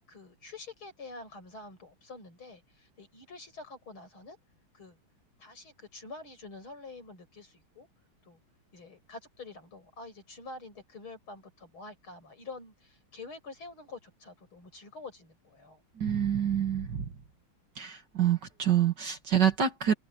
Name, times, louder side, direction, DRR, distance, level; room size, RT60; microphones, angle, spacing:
voice 1, 0.0-4.4 4.7-5.0 5.4-7.9 8.2-8.4 8.7-15.8, left 3 dB, 85° left, 7.7 m, -47 dB
voice 2, 16.0-17.1 17.8-19.9, right 9 dB, 60° right, 2.4 m, -27 dB
omnidirectional pair, 2.2 m